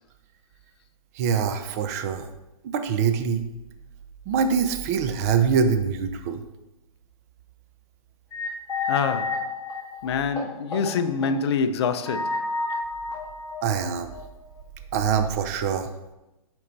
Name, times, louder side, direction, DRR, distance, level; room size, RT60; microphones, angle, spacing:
voice 1, 1.2-2.3 2.6-3.5 4.3-6.4 13.6-14.1 14.9-15.9, right 6 dB, 25° right, 0.4 m, -24 dB
sound 1, 8.3-10.9 11.2-11.3 12.0-14.2, left 4 dB, 10° left, 1.9 m, -30 dB
voice 2, 8.9-9.5 10.0-12.4, left 6 dB, 45° left, 0.5 m, -26 dB
7.0 x 4.5 x 4.0 m
hypercardioid pair, 155°, 19 cm